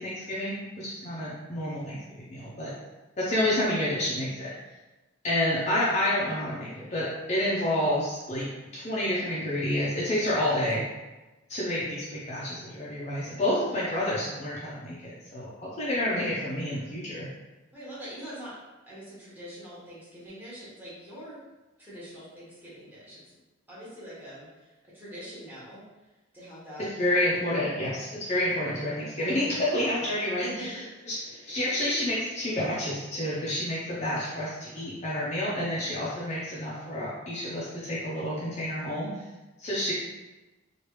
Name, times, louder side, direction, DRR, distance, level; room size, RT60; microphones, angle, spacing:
voice 1, 0.0-2.0 2.2-2.7 3.2-4.5 5.2-10.8 11.5-17.3 27.0-30.8 31.1-39.2 39.6-39.9, left 1 dB, 35° left, -7 dB, 0.5 m, -29 dB
voice 2, 10.2-10.7 17.7-18.5 18.9-21.4 21.8-23.4 23.7-25.8 26.3-26.9 30.0-30.1 30.4-30.7, equal, 10° right, -10 dB, 1.1 m, -43 dB
3.1 x 2.4 x 3.0 m, 1.1 s
head